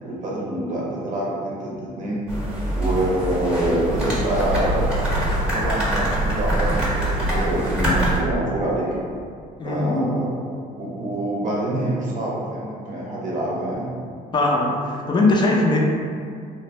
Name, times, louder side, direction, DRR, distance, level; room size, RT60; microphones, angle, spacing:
voice 1, 0.0-2.2 2.8-5.0 5.5-8.9 9.6-10.3 10.8-13.9, right 1 dB, 50° right, -5 dB, 0.6 m, -26 dB
sound 1, 2.3-8.2, right 1 dB, 5° right, 0.8 m, -23 dB
voice 2, 9.6-10.1 14.3-15.8, left 2 dB, 25° left, -1 dB, 0.4 m, -20 dB
2.5 x 2.0 x 3.1 m, 2.3 s
cardioid pair, 110°, 17 cm